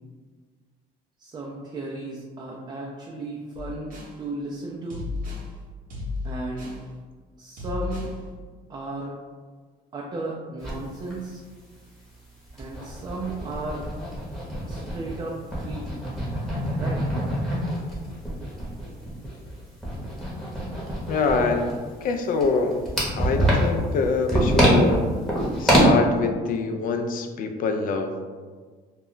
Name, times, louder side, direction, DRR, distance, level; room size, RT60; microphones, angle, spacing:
voice 1, 1.2-5.0 6.2-6.7 7.4-8.1 8.7-9.1 9.9-11.4 12.5-13.8 14.7-16.1 16.7-17.0, right 2 dB, 25° right, -2 dB, 0.4 m, -35 dB
sound 1, 3.6-4.2 4.9-5.5 5.9-6.8 7.6-8.2, left 3 dB, 55° right, 0.7 m, -33 dB
sound 2, 10.6-10.7 11.1-11.2 11.5-11.6 12.1-15.2 15.5-25.8, equal, 5° left, 0.9 m, -25 dB
voice 2, 21.1-21.7 22.0-22.8 23.2-25.0 25.6-28.1, left 4 dB, 55° left, 5 dB, 0.4 m, -25 dB
2.3 x 2.1 x 3.7 m, 1.5 s
cardioid pair, 110°, 17 cm